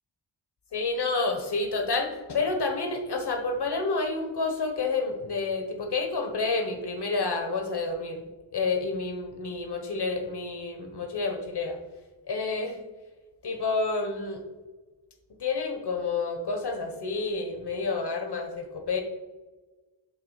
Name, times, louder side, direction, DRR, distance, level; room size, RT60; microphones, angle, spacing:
voice 1, 0.7-8.2 8.5-11.8 12.3-12.8 13.4-14.4 15.4-19.0, left 3 dB, 55° left, 5 dB, 1.4 m, -29 dB
8.7 x 3.4 x 6.6 m, 1.3 s
wide cardioid pair, 120°, 48 cm